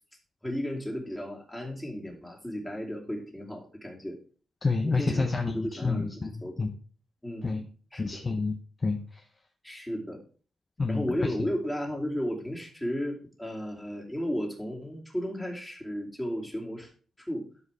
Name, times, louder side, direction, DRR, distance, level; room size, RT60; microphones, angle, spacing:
voice 1, 0.4-4.2 4.8-6.1 6.4-6.6 7.2-7.6 7.9-8.2 9.6-10.2 10.9-16.9 17.2-17.5, equal, 10° left, -1 dB, 2.7 m, -34 dB
voice 2, 4.6-6.7 7.4-7.6 8.0-9.2 10.8-11.5, left 3 dB, 30° left, 5 dB, 0.9 m, -29 dB
12.0 x 5.0 x 3.4 m, 0.40 s
cardioid pair, 95°, 0 cm